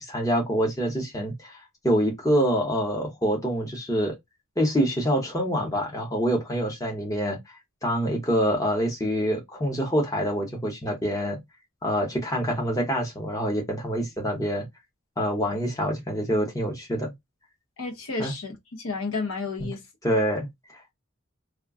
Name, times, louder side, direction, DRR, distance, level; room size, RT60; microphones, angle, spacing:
voice 1, 0.0-1.6 1.8-4.1 4.6-11.4 11.8-14.7 15.2-17.1 18.2-18.3 19.6-19.7 20.0-20.5, equal, 15° left, 0.7 m, -26 dB
voice 2, 17.8-19.8, left 3 dB, 70° left, 0.8 m, -31 dB
2.3 x 2.1 x 3.5 m
head